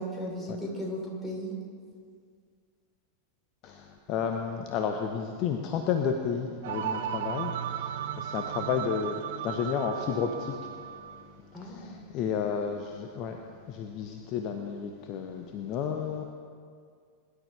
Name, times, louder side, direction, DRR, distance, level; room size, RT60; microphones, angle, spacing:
voice 1, 0.0-1.5 11.5-12.1, equal, 10° left, -3 dB, 3.7 m, -36 dB
voice 2, 3.6-10.7 11.6-13.4 13.7-16.2, left 7 dB, 40° left, 4 dB, 0.9 m, -32 dB
sound 1, 6.6-11.2, right 9 dB, 55° right, 0.7 m, -35 dB
22.0 x 11.5 x 3.4 m, 2.1 s
figure-of-eight pair, 90°, 0 cm